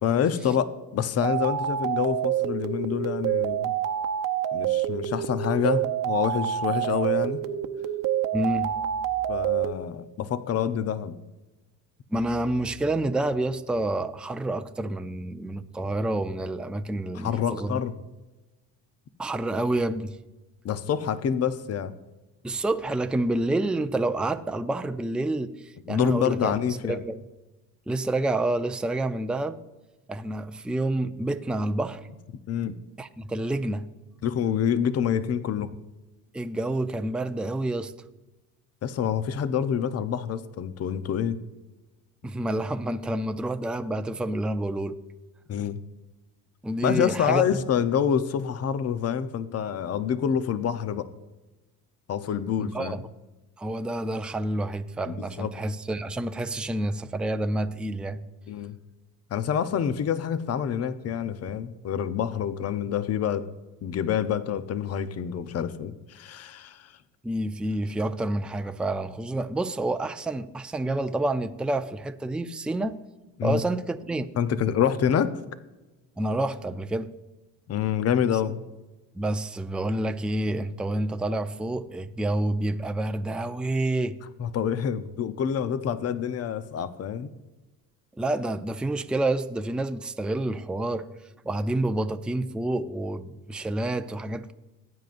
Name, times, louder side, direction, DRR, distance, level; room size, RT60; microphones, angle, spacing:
voice 1, 0.0-3.7 4.5-7.4 9.3-11.2 17.1-17.9 20.6-21.9 25.9-27.0 32.5-32.8 34.2-35.7 38.8-41.4 45.5-45.8 46.8-51.1 52.1-53.0 55.1-55.5 58.5-58.8 59.3-63.5 63.8-66.9 73.4-73.6 74.4-75.3 77.7-78.6 84.4-87.3, left 8 dB, 45° left, 0.8 m, -27 dB
sound 1, 1.2-9.7, right 11 dB, 65° right, 0.9 m, -27 dB
voice 2, 8.3-8.7 12.1-17.8 19.2-20.2 22.4-26.6 26.8-27.2 27.9-29.6 30.1-32.0 33.0-33.9 36.3-37.9 42.2-45.0 46.6-47.6 52.6-53.0 53.6-58.2 67.2-73.0 73.4-74.3 76.2-77.1 79.2-84.2 88.2-91.1 91.4-94.5, right 1 dB, 5° right, 0.5 m, -28 dB
18.5 x 9.3 x 2.6 m
cardioid pair, 95°, 36 cm